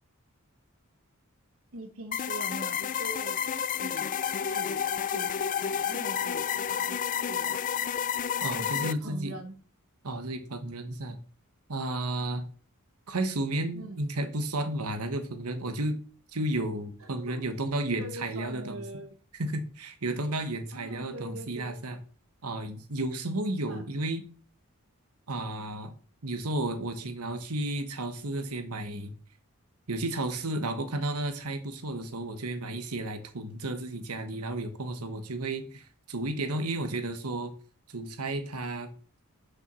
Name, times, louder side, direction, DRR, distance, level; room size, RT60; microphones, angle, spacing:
voice 1, 1.7-4.1 4.5-4.8 5.1-7.6 8.6-9.5 13.7-14.0 17.0-17.4 17.9-19.1 20.7-21.8 23.7-23.8, right 2 dB, 65° right, 7 dB, 1.2 m, -43 dB
sound 1, 2.1-8.9, left 8 dB, 35° left, 0.4 m, -30 dB
voice 2, 8.4-9.3 10.0-11.2 11.7-12.4 13.1-15.9 16.3-18.8 19.3-22.0 22.4-24.2 25.3-25.9 26.2-29.1 29.9-37.5 37.9-38.9, right 2 dB, 85° right, 8 dB, 1.2 m, -32 dB
7.0 x 5.8 x 6.1 m, 0.40 s
head